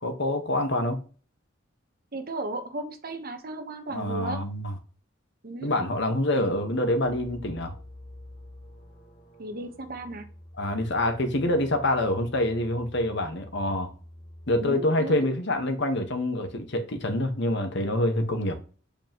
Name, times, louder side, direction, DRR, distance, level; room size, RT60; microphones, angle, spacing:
voice 1, 0.0-1.0 3.9-4.7 5.6-7.7 10.6-13.9 14.5-18.6, left 1 dB, 65° left, 1.3 m, -26 dB
voice 2, 2.1-4.4 5.4-5.9 9.4-10.3 14.6-15.4, right 2 dB, 50° right, 1.0 m, -35 dB
sound 1, 7.0-14.7, left 1 dB, 45° left, 1.6 m, -47 dB
7.3 x 5.2 x 3.0 m
head